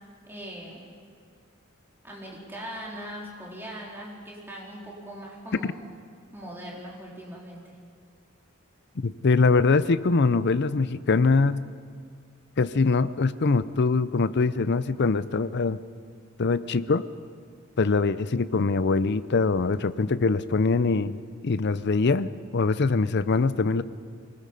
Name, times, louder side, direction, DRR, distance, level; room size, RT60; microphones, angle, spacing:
voice 1, 0.3-0.9 2.0-5.8 6.3-7.7, equal, 10° right, -4 dB, 4.0 m, -40 dB
voice 2, 9.0-11.6 12.6-15.8 16.4-17.1 17.8-21.2 21.4-23.8, left 4 dB, 55° left, 15 dB, 0.6 m, -23 dB
24.0 x 19.5 x 5.4 m, 2.1 s
head